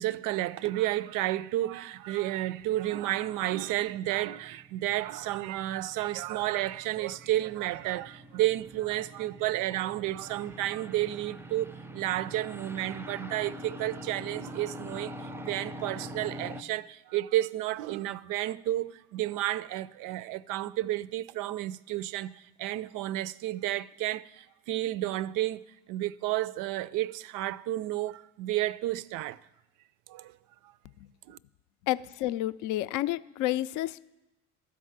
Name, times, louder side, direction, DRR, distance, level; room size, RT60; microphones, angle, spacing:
voice 1, 0.0-11.7 11.9-25.6 25.9-29.4 30.1-30.3 31.3-31.4, right 15 dB, 60° right, 0.5 m, -31 dB
sound 1, 2.0-16.6, equal, 5° right, 0.4 m, -45 dB
voice 2, 31.8-34.2, left 15 dB, 55° left, 0.5 m, -30 dB
13.0 x 4.8 x 7.3 m
hypercardioid pair, 65°, 37 cm